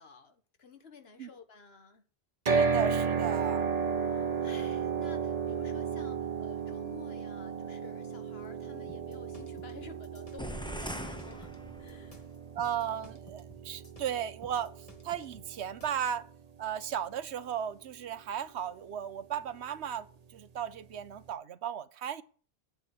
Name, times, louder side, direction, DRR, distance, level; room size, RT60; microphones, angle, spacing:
voice 1, 0.0-2.0 4.1-11.5 11.8-12.2, left 5 dB, 70° left, 1.6 m, -52 dB
sound 1, 2.5-16.6, right 6 dB, 40° right, 0.9 m, -34 dB
voice 2, 2.5-3.7 12.5-14.7 15.0-16.3 16.6-22.2, right 9 dB, 85° right, 1.1 m, -35 dB
sound 2, 8.9-16.1, left 1 dB, 35° left, 1.7 m, -56 dB
sound 3, 10.4-12.2, equal, 5° left, 0.8 m, -40 dB
8.9 x 7.9 x 8.5 m
omnidirectional pair, 1.1 m